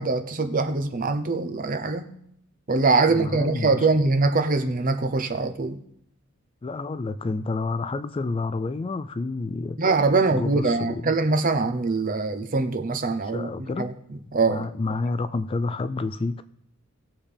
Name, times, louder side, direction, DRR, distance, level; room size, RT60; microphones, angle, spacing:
voice 1, 0.0-2.1 2.7-5.8 9.8-13.9 14.3-14.7, right 3 dB, 40° right, 0.8 m, -23 dB
voice 2, 3.1-3.9 6.6-9.8 10.3-11.1 13.3-13.9 14.4-16.4, left 3 dB, 25° left, 0.3 m, -29 dB
18.5 x 7.1 x 3.4 m
head